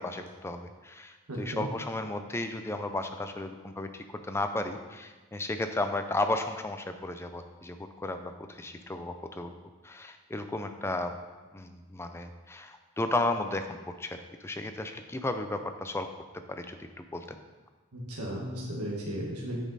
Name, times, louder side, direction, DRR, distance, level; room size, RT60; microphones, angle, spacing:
voice 1, 0.0-9.5 9.8-11.1 11.5-16.1 16.5-17.4, left 2 dB, 10° left, 7 dB, 0.4 m, -34 dB
voice 2, 1.3-1.6 17.9-19.6, equal, 90° right, -3 dB, 1.4 m, -35 dB
8.5 x 5.2 x 4.0 m, 1.3 s
head